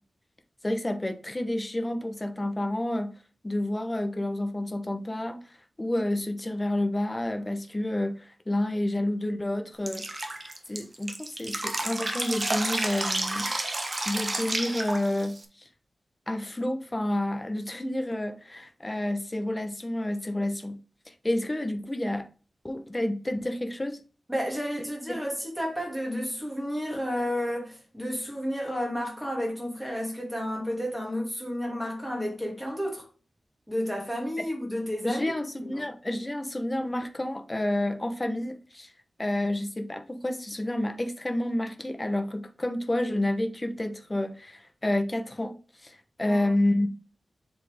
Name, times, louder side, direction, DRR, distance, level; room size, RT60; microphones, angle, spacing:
voice 1, 0.6-3.1 3.4-5.4 5.8-10.3 10.7-13.5 14.1-15.7 16.3-20.8 21.1-22.3 22.6-24.0 25.1-25.2 34.4-34.5 35.0-38.9 39.2-45.5 45.8-46.9, left 1 dB, 20° left, 1.0 m, -29 dB
Drip, 9.9-15.4, right 2 dB, 25° right, 1.1 m, -31 dB
voice 2, 24.3-33.0 33.7-35.3 35.6-35.8 46.2-46.5, equal, ahead, 2.6 m, -31 dB
7.3 x 4.4 x 3.5 m
wide cardioid pair, 140°, 0 cm